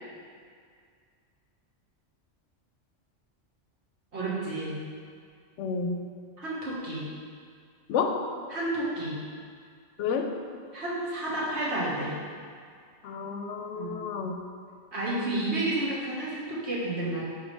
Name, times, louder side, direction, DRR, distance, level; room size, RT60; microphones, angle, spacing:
voice 1, 4.1-4.8 6.4-7.1 8.5-9.2 10.7-12.1 13.8-14.0 14.9-17.2, right 2 dB, 65° right, -7 dB, 1.8 m, -31 dB
voice 2, 5.6-6.0 7.9-8.2 10.0-10.3 13.0-14.4, left 5 dB, 85° left, 4 dB, 0.9 m, -30 dB
9.7 x 3.5 x 3.3 m, 2.1 s
omnidirectional pair, 1.2 m